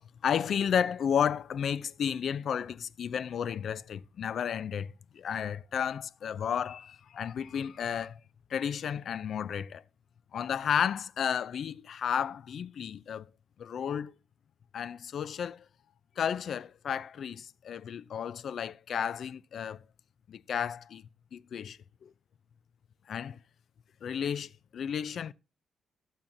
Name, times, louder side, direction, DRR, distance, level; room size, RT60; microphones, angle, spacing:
voice 1, 0.0-8.2 8.5-9.8 10.3-13.3 13.6-14.1 14.7-15.6 16.2-19.8 20.3-21.0 21.3-22.1 23.1-23.4 24.0-25.3, left 8 dB, 55° left, 0.4 m, -32 dB
17.0 x 7.4 x 2.6 m
cardioid pair, 135°, 0 cm